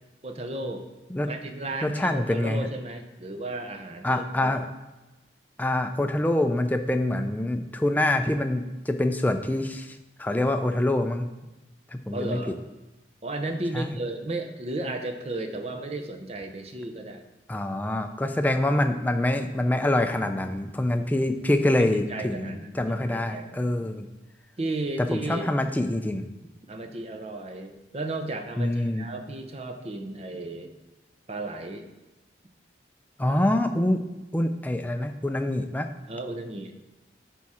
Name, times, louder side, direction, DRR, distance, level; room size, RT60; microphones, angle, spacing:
voice 1, 0.2-0.9 1.2-4.5 12.1-12.6 13.2-17.2 21.8-23.8 24.6-25.5 26.7-30.7 31.3-31.9 36.1-36.8, right 2 dB, 35° right, 6 dB, 0.6 m, -34 dB
voice 2, 1.8-2.7 4.0-4.7 5.6-11.3 11.9-12.4 13.7-13.9 17.5-24.1 25.1-26.3 28.6-29.1 33.2-34.0 34.3-35.9, left 1 dB, 10° left, 7 dB, 0.4 m, -25 dB
10.5 x 3.6 x 4.3 m, 1.1 s
head